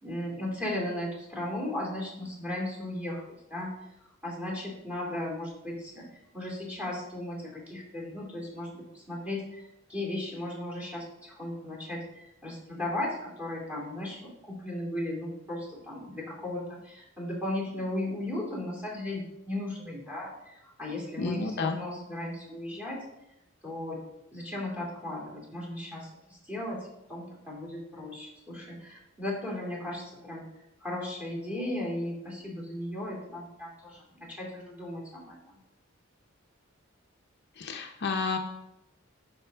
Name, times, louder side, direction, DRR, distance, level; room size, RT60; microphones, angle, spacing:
voice 1, 0.0-3.2 3.5-3.7 4.2-6.1 6.3-23.0 23.6-24.0 24.3-30.5 30.8-35.6, left 1 dB, 10° right, -3 dB, 2.5 m, -36 dB
voice 2, 21.2-21.8 37.6-38.4, left 4 dB, 55° left, 4 dB, 0.7 m, -31 dB
11.0 x 5.1 x 3.5 m, 0.86 s
head